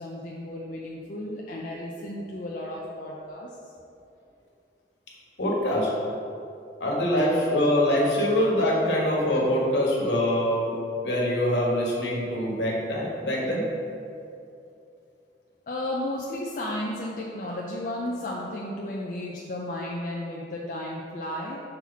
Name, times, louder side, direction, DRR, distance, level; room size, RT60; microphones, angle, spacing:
voice 1, 0.0-3.7 15.7-21.6, left 1 dB, 45° left, -3 dB, 0.4 m, -33 dB
voice 2, 5.4-5.9 6.8-10.7 11.0-13.6, left 1 dB, 70° left, -4 dB, 1.3 m, -24 dB
5.9 x 4.3 x 4.1 m, 2.6 s
head